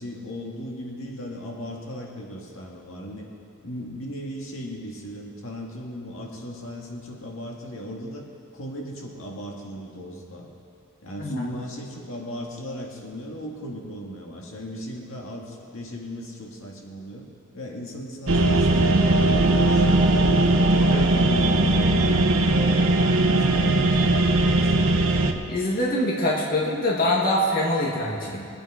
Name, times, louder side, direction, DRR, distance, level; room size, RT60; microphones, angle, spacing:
voice 1, 0.0-3.3 3.6-8.2 8.5-10.5 11.0-17.3 17.5-24.1 24.4-25.0, equal, 65° left, -1 dB, 2.0 m, -37 dB
sound 1, 18.3-25.3, right 2 dB, 70° right, 1.0 m, -19 dB
voice 2, 25.5-28.5, left 1 dB, 40° left, -4 dB, 1.6 m, -24 dB
22.0 x 8.9 x 5.0 m, 2.5 s
head